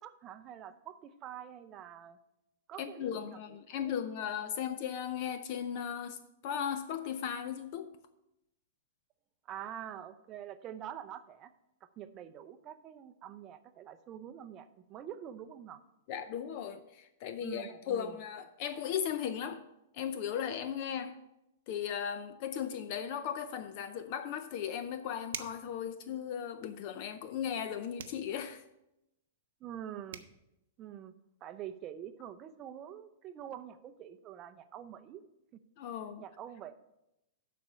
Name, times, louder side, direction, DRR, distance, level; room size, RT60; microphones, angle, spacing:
voice 1, 0.0-2.2 2.7-3.6 3.8-4.0 9.5-11.5 12.0-15.8 17.4-18.2 29.6-30.2 30.8-31.1 31.4-35.2 35.5-35.6 36.2-36.7, right 10 dB, 25° right, 0.5 m, -46 dB
voice 2, 2.8-6.2 6.4-7.9 16.1-19.6 19.9-21.2 21.7-28.6 35.8-36.2, left 8 dB, 40° left, 0.5 m, -37 dB
sound 1, 25.3-25.7 28.0-28.3 29.8-29.9 30.1-30.3, right 9 dB, 70° right, 0.7 m, -42 dB
11.5 x 4.2 x 5.5 m
hypercardioid pair, 160°, 0 cm